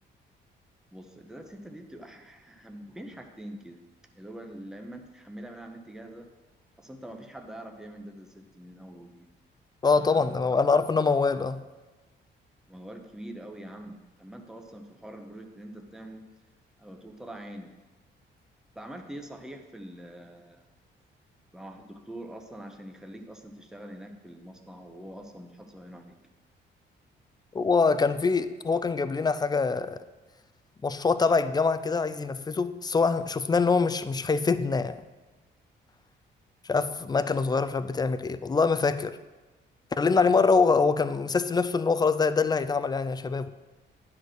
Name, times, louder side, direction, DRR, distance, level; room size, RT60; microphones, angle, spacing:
voice 1, 0.9-3.8 4.1-6.3 6.8-9.3 9.9-10.4 12.7-16.2 16.8-17.7 18.7-20.6 21.5-26.2, right 1 dB, 5° right, 0.9 m, -44 dB
voice 2, 9.8-11.6 27.5-30.0 30.8-35.0 36.6-39.2 40.0-43.5, left 4 dB, 20° left, 0.4 m, -24 dB
9.7 x 4.3 x 6.4 m
cardioid pair, 90°, 20 cm